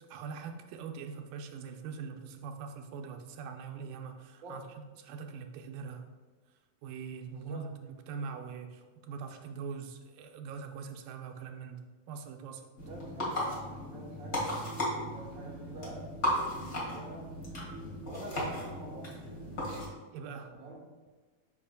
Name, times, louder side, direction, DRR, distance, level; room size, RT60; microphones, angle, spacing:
voice 1, 0.1-4.6 5.0-6.1 6.8-12.6 20.1-20.5, right 5 dB, 80° right, 5 dB, 2.2 m, -42 dB
voice 2, 7.3-7.7 12.9-13.5 13.9-14.6 15.1-17.3 18.0-19.6 20.4-20.8, right 1 dB, 65° right, -4 dB, 0.8 m, -46 dB
sound 1, 12.8-19.9, equal, 35° left, 1.5 m, -36 dB
8.4 x 5.7 x 2.2 m, 1.4 s
omnidirectional pair, 4.0 m